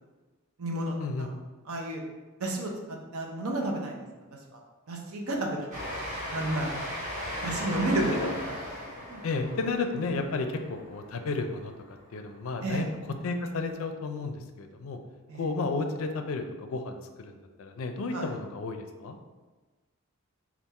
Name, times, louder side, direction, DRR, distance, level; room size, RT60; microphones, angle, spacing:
voice 1, 0.6-1.3 1.7-2.0 2.4-4.1 4.3-4.6 4.9-5.8 6.3-6.7 7.4-8.3 8.9-9.5 12.6-12.9 15.3-15.5 18.1-18.3, right 1 dB, 80° right, 1 dB, 0.7 m, -32 dB
Train, 5.7-11.9, equal, 35° right, 0.9 m, -37 dB
voice 2, 9.2-12.9 13.2-15.0 15.3-17.3 17.6-19.2, left 3 dB, 70° left, 6 dB, 0.4 m, -32 dB
4.1 x 2.4 x 3.6 m, 1.3 s
head